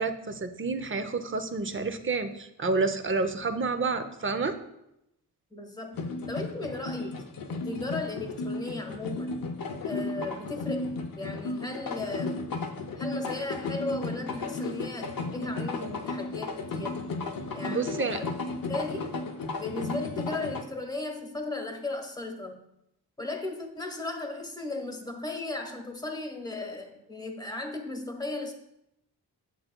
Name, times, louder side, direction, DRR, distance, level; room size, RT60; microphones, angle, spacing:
voice 1, 0.0-4.6 17.7-18.2, right 3 dB, 30° right, 9 dB, 0.6 m, -29 dB
voice 2, 5.5-9.4 9.8-12.5 13.0-17.1 17.5-18.2 18.5-19.2 19.6-22.6 23.2-28.5, left 2 dB, 10° left, 4 dB, 1.1 m, -36 dB
sound 1, 5.9-20.6, left 3 dB, 55° left, 0.7 m, -34 dB
7.5 x 6.7 x 2.2 m, 0.84 s
cardioid pair, 75°, 40 cm